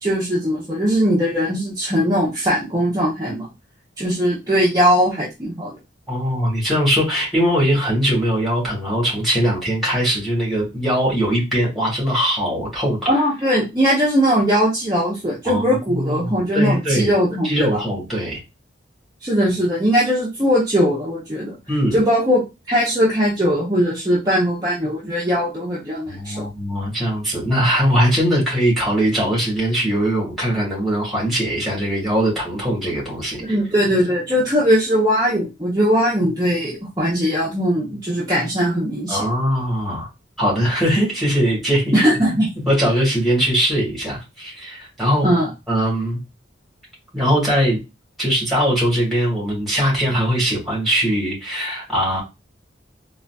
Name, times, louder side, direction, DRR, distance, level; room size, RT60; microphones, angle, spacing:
voice 1, 0.0-3.5 4.0-5.8 13.1-17.8 19.2-21.5 21.9-26.4 33.4-39.2 41.9-42.5 45.2-45.5, equal, 20° right, -7 dB, 0.7 m, -19 dB
voice 2, 6.1-13.1 15.4-17.1 17.4-18.4 21.7-22.0 26.1-33.6 39.1-40.1 40.4-42.0 42.6-45.3 45.7-46.2 47.1-47.8 48.2-52.2, equal, ahead, -5 dB, 1.5 m, -21 dB
3.9 x 2.4 x 2.2 m, 0.25 s
head